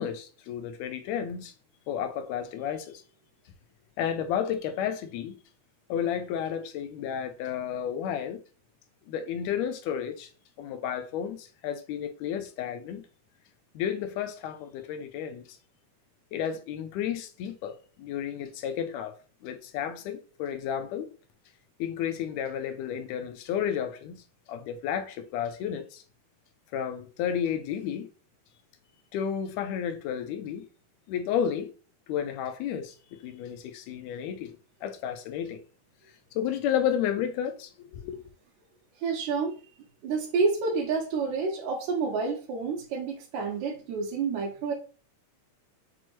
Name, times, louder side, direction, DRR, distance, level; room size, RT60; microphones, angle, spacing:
voice 1, 0.0-1.5 1.9-3.0 4.0-5.3 5.9-8.4 9.1-10.3 10.6-13.0 13.8-15.4 16.3-19.1 19.4-21.1 21.8-24.2 24.5-26.0 26.7-28.1 29.1-30.7 31.1-31.7 32.1-34.6 34.8-35.6 36.4-38.2, left 9 dB, 80° left, 1.7 m, -32 dB
voice 2, 39.0-39.6 40.0-44.7, right 4 dB, 80° right, 2.1 m, -29 dB
6.0 x 2.0 x 3.0 m
omnidirectional pair, 3.3 m